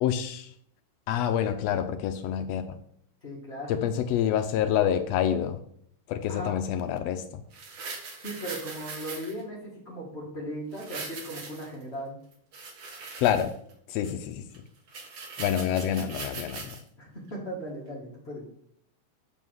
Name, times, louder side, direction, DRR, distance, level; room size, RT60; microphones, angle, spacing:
voice 1, 0.0-0.5 1.1-2.7 3.7-5.6 6.1-7.4 13.2-13.5 13.9-14.4 15.4-16.8, left 9 dB, 85° left, 7 dB, 1.4 m, -27 dB
voice 2, 3.2-3.7 6.3-6.5 8.2-9.6 9.8-12.1 15.5-15.7 17.0-18.4, right 1 dB, 35° left, -3 dB, 1.1 m, -37 dB
sound 1, 7.5-9.4 10.7-11.8 12.3-13.7 14.0-14.1 14.5-14.6 14.9-16.8 17.3-17.4, right 4 dB, 50° right, 1.5 m, -40 dB
5.5 x 5.1 x 6.2 m, 0.65 s
omnidirectional pair, 3.6 m